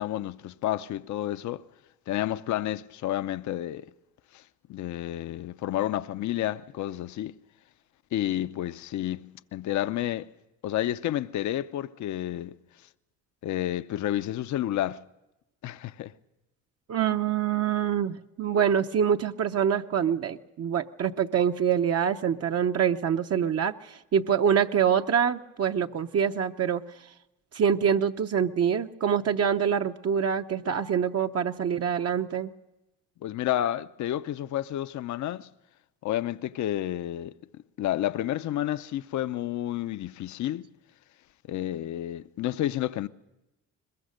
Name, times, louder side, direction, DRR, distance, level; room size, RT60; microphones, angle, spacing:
voice 1, 0.0-1.6 2.1-3.9 4.3-4.4 4.7-7.3 8.1-9.3 9.5-10.3 10.6-12.5 13.4-15.0 15.6-16.1 33.2-35.5 36.0-37.3 37.8-40.7 41.5-43.1, left 13 dB, 70° left, 0.7 m, -30 dB
voice 2, 16.9-26.8 27.5-32.5, right 8 dB, 55° right, 0.8 m, -25 dB
21.5 x 21.0 x 6.5 m
cardioid pair, 90°, 30 cm